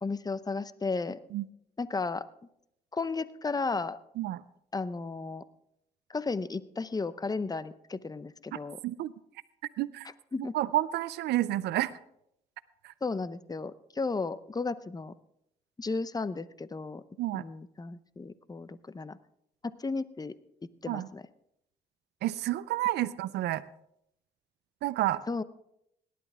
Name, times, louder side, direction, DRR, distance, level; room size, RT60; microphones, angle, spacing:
voice 1, 0.0-1.2 1.8-2.2 2.9-4.0 4.7-5.4 6.1-8.8 10.3-10.6 13.0-15.1 15.8-17.0 17.3-19.2 19.8-20.4 20.8-21.2 25.3-25.4, left 4 dB, 20° left, 15 dB, 0.7 m, -34 dB
voice 2, 8.5-9.1 9.8-10.1 10.4-11.9 12.8-12.9 17.2-17.4 20.9-21.1 22.2-23.6 24.8-25.2, right 15 dB, 90° right, 16 dB, 0.5 m, -30 dB
18.0 x 11.0 x 3.6 m, 0.76 s
cardioid pair, 65°, 17 cm